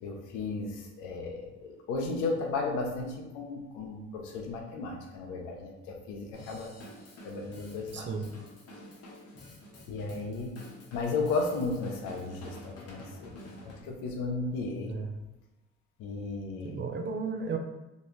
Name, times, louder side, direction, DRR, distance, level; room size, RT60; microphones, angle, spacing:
voice 1, 0.0-6.7 7.2-8.1 9.9-15.0 16.0-16.8, left 3 dB, 80° left, 2 dB, 0.6 m, -35 dB
Drum kit / Drum, 6.3-13.8, left 1 dB, 55° left, 0.8 m, -49 dB
voice 2, 7.9-8.3 14.9-15.2 16.6-17.6, right 5 dB, 40° right, 5 dB, 0.4 m, -34 dB
2.5 x 2.2 x 3.0 m, 1.0 s
supercardioid pair, 55°, 30 cm